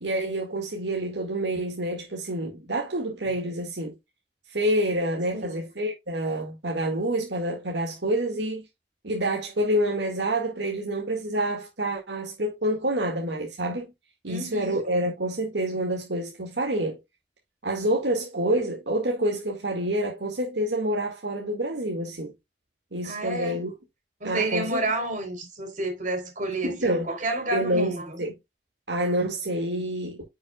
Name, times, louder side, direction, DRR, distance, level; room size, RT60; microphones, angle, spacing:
voice 1, 0.0-4.0 4.5-8.7 9.0-13.9 14.2-17.0 17.6-22.3 22.9-23.7 24.2-24.8 26.6-28.3 28.9-30.2, right 1 dB, 80° right, 2.0 m, -27 dB
voice 2, 5.3-5.6 14.3-14.8 23.0-23.6 24.2-28.1, right 2 dB, 45° right, 4.0 m, -30 dB
9.9 x 6.1 x 2.3 m
head